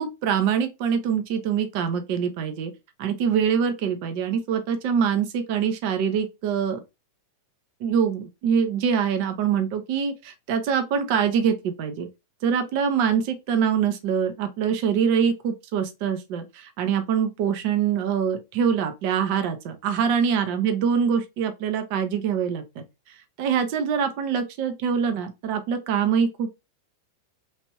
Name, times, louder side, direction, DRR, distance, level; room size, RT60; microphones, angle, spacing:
voice 1, 0.0-2.7 3.0-6.8 7.8-12.1 12.4-22.8 23.4-26.6, right 7 dB, 45° right, 0.6 m, -24 dB
3.0 x 2.5 x 3.0 m
figure-of-eight pair, 90°, 0 cm